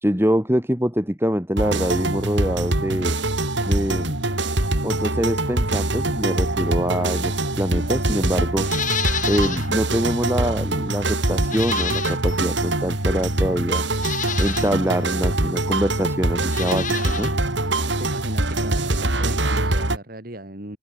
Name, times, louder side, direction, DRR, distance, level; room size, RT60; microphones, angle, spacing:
voice 1, 0.0-3.2 3.7-4.2 4.8-8.7 9.3-13.8 14.4-17.3, equal, 10° right, 3.2 m, -24 dB
sound 1, 1.6-20.0, right 2 dB, 65° right, 3.6 m, -23 dB
Livestock farm animals working animals, 8.6-9.7 10.1-10.2 11.4-12.5 13.3-13.4 13.9-14.7 16.4-17.3 17.6-17.7, left 8 dB, 40° left, 7.2 m, -29 dB
voice 2, 17.8-20.8, right 1 dB, 50° right, 3.1 m, -37 dB
head